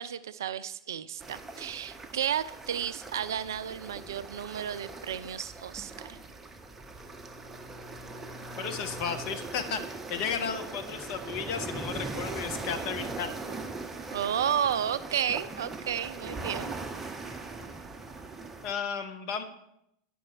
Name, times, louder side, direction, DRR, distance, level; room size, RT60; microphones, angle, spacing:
voice 1, 0.0-6.2 14.1-16.7, right 9 dB, 65° right, 15 dB, 0.3 m, -32 dB
sound 1, 1.2-18.7, right 3 dB, 15° right, 0.7 m, -40 dB
Bowed string instrument, 6.4-9.5, left 5 dB, 10° left, 3.4 m, -49 dB
voice 2, 8.6-13.6 18.6-19.4, left 6 dB, 45° left, 7 dB, 0.9 m, -34 dB
9.6 x 5.4 x 4.4 m, 0.79 s
figure-of-eight pair, 90°, 2 cm